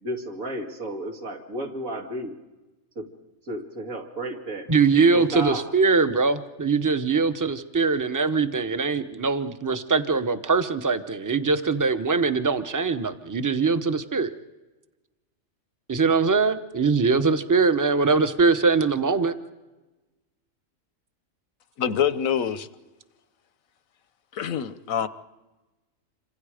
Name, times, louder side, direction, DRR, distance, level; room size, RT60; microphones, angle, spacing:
voice 1, 0.0-2.4 3.0-3.1 3.5-4.7 5.1-5.6, right 1 dB, 90° right, 2 dB, 2.9 m, -32 dB
voice 2, 4.7-14.3 15.9-19.3, right 4 dB, 15° right, 10 dB, 0.8 m, -22 dB
voice 3, 21.8-22.7 24.3-25.1, left 8 dB, 85° left, 13 dB, 1.3 m, -25 dB
27.5 x 25.5 x 5.0 m, 1.1 s
omnidirectional pair, 1.4 m